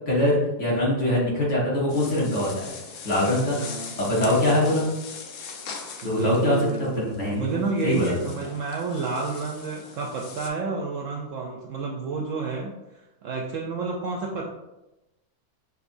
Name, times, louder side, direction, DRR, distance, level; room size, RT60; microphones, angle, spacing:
voice 1, 0.1-2.7 3.0-3.6 4.0-4.9 6.0-7.6 7.8-8.1, left 1 dB, 50° left, -6 dB, 1.6 m, -23 dB
sound 1, 1.9-10.5, left 5 dB, 65° left, 0.8 m, -41 dB
voice 2, 3.2-4.9 6.0-12.7 13.2-14.4, right 4 dB, 65° right, 0 dB, 0.8 m, -30 dB
6.5 x 2.7 x 2.6 m, 0.97 s
omnidirectional pair, 1.7 m